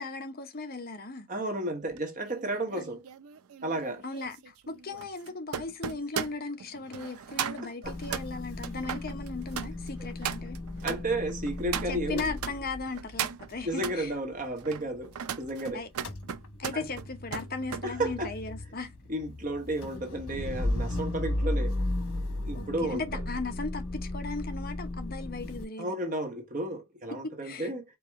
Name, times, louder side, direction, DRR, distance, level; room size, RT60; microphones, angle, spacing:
voice 1, 0.0-1.3 2.7-2.8 4.0-10.6 11.9-14.1 15.7-15.9 16.6-18.9 22.5-25.9 27.1-27.7, left 3 dB, 40° left, 0.8 m, -37 dB
voice 2, 1.3-3.0 3.6-4.0 7.8-8.2 10.8-12.3 13.6-15.8 16.7-16.8 17.8-18.3 19.1-21.7 22.4-23.2 25.8-27.8, right 1 dB, 35° right, 1.2 m, -33 dB
sound 1, 1.9-12.6 12.9-14.0 14.5-17.9 18.2-18.5, right 8 dB, 80° right, 0.5 m, -38 dB
Motor vehicle (road) / Engine starting / Idling, 7.8-15.6 15.8-25.6, left 1 dB, 90° left, 1.2 m, -35 dB
4.7 x 2.9 x 3.5 m
head